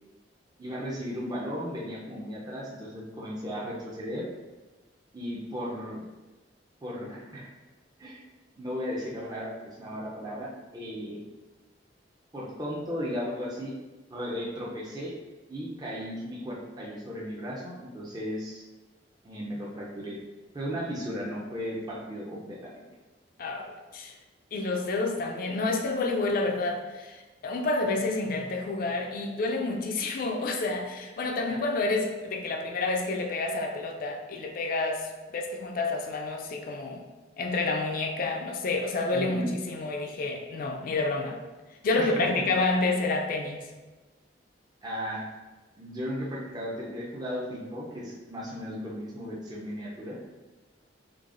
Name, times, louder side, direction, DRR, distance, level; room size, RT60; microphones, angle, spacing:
voice 1, 0.6-4.3 5.1-6.0 6.8-7.5 8.0-8.2 8.6-11.2 12.3-13.7 14.1-15.1 15.5-18.6 19.2-20.2 20.5-22.7 31.5-31.6 39.1-39.5 42.0-42.4 44.8-45.3 45.8-50.2, equal, 20° right, -4 dB, 0.5 m, -35 dB
voice 2, 23.4-24.1 24.5-37.0 37.4-41.4 41.8-43.7, left 3 dB, 50° left, 2 dB, 0.3 m, -29 dB
3.8 x 3.3 x 2.4 m, 1.2 s
head